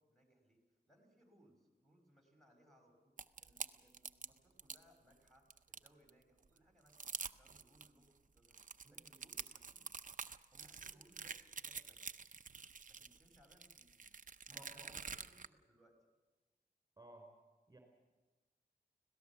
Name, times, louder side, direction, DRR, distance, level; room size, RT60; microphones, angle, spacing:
voice 1, 0.0-3.1 3.4-8.6 8.9-9.8 10.5-12.0 12.9-14.2 14.5-16.0, equal, ahead, 2 dB, 5.3 m, -69 dB
sound 1, 3.2-4.8 5.3-6.1 6.6-6.7 6.9-7.9 8.4-15.5, right 5 dB, 50° right, 0.7 m, -48 dB
voice 2, 14.5-14.9 17.0-17.3 17.7-17.8, right 1 dB, 20° right, 2 dB, 3.9 m, -57 dB
25.5 x 17.5 x 7.0 m, 1.2 s
wide cardioid pair, 75°, 17 cm